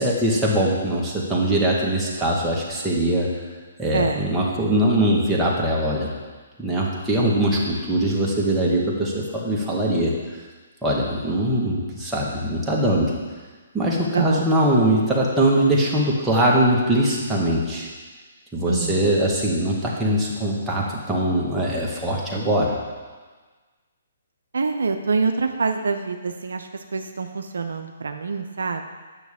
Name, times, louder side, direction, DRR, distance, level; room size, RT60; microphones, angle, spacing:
voice 1, 0.0-3.3 3.8-6.1 6.6-10.1 10.8-13.1 13.7-17.9 18.5-22.7, right 1 dB, 10° right, -5 dB, 1.5 m, -21 dB
voice 2, 3.9-4.3 14.1-14.5 18.6-19.1 24.5-28.9, right 4 dB, 75° right, 6 dB, 0.5 m, -25 dB
9.2 x 6.3 x 3.6 m, 1.4 s
figure-of-eight pair, 135°, 0 cm